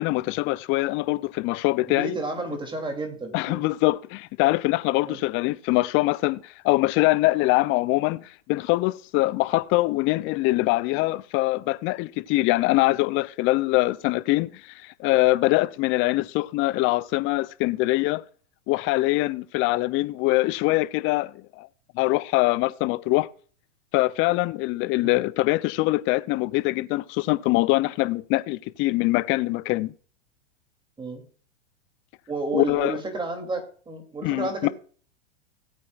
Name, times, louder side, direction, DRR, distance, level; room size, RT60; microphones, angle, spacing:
voice 1, 0.0-2.1 3.3-18.2 18.7-21.7 21.9-23.3 23.9-29.9 32.5-33.0 34.2-34.7, left 20 dB, 35° left, 0.6 m, -23 dB
voice 2, 1.9-3.7 5.1-5.2 25.0-25.2 31.0-31.2 32.3-34.7, right 3 dB, 15° right, 2.9 m, -31 dB
18.0 x 8.5 x 2.5 m
hypercardioid pair, 115°, 36 cm